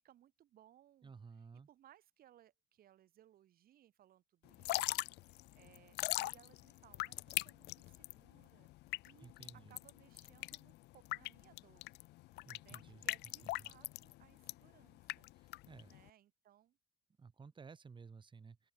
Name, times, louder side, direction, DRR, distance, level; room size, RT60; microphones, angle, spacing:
voice 1, 0.0-8.7 9.0-11.9 12.5-16.8, right 12 dB, 60° right, 2.8 m, -66 dB
voice 2, 1.0-1.7 9.2-9.7 12.4-13.0 13.4-13.5 15.3-15.9 17.2-18.7, right 5 dB, 30° right, 3.0 m, -55 dB
Drip / Trickle dribble, 4.5-16.1, left 19 dB, 85° left, 0.9 m, -41 dB
open air
cardioid pair, 110°, 17 cm